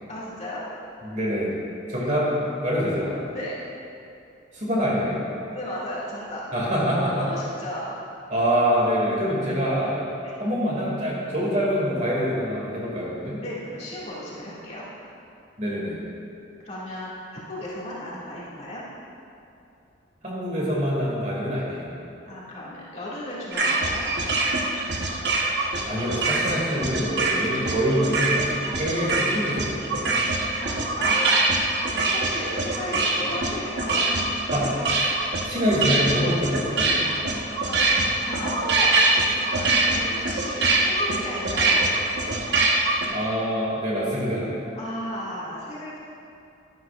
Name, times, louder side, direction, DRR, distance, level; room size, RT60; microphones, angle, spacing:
voice 1, 0.1-0.6 3.3-3.5 5.5-6.5 7.2-8.0 10.2-10.4 13.4-14.8 16.6-18.8 22.3-24.1 30.6-31.5 32.1-34.1 37.4-41.8 44.8-46.0, equal, 35° left, -8 dB, 2.2 m, -34 dB
voice 2, 1.0-1.5 1.9-3.1 4.5-5.2 6.5-7.3 8.3-10.1 10.4-13.4 15.6-15.9 20.2-21.9 25.8-28.4 28.8-30.2 34.5-35.1 35.4-37.1 43.1-44.5, equal, 40° right, -5 dB, 2.4 m, -25 dB
sound 1, 23.5-43.1, right 2 dB, 55° right, 1.1 m, -24 dB
12.0 x 12.0 x 2.5 m, 2.7 s
head